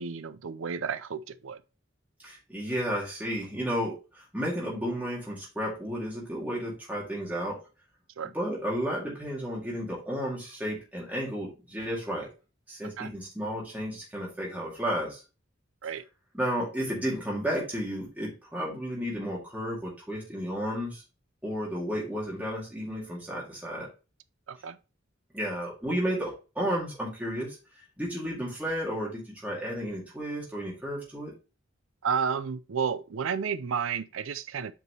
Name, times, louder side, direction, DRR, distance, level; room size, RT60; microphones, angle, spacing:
voice 1, 0.0-1.6 8.2-8.3 13.0-13.1 15.8-16.0 24.5-24.8 32.0-34.7, right 6 dB, 75° right, 0.5 m, -31 dB
voice 2, 2.2-7.6 8.3-12.3 12.7-15.2 16.3-21.0 21.4-23.9 25.3-27.6 28.0-31.3, equal, 10° right, 2.1 m, -32 dB
8.0 x 4.8 x 2.9 m
head